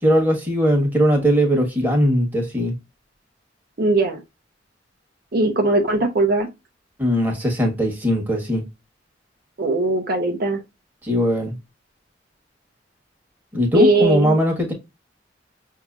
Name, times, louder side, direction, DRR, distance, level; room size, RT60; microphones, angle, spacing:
voice 1, 0.0-2.7 7.0-8.6 11.0-11.5 13.5-14.7, equal, 10° right, 1.4 m, -19 dB
voice 2, 3.8-4.2 5.3-6.5 9.6-10.6 13.7-14.4, right 2 dB, 55° right, 0.8 m, -19 dB
6.0 x 2.8 x 2.3 m
head